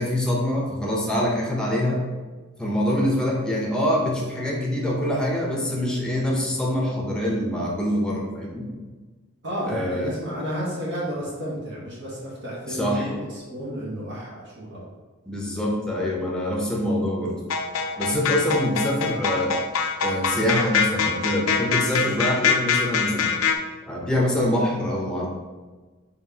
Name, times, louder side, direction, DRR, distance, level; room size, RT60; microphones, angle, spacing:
voice 1, 0.0-2.0 2.6-8.7 9.7-10.1 12.7-13.1 15.3-17.4 18.0-19.6 20.0-23.3 23.9-25.3, left 1 dB, 5° left, -3 dB, 0.8 m, -25 dB
voice 2, 9.4-14.8, equal, 55° right, -6 dB, 1.2 m, -31 dB
sound 1, 17.5-23.6, left 6 dB, 70° left, 0.4 m, -24 dB
4.4 x 3.5 x 2.8 m, 1.3 s
head